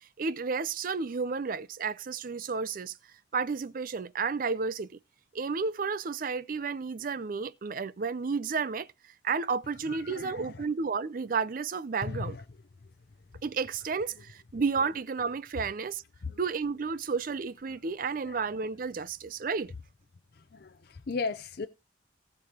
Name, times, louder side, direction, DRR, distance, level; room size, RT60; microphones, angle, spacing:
voice 1, 0.2-3.0 3.3-5.0 5.3-12.4 13.4-16.0 16.4-19.7, right 5 dB, 45° right, 0.4 m, -32 dB
voice 2, 9.9-10.7 12.0-12.4 16.2-16.4 17.7-17.8 18.2-18.4 20.3-21.7, left 4 dB, 50° left, 0.5 m, -37 dB
18.5 x 6.7 x 2.9 m
head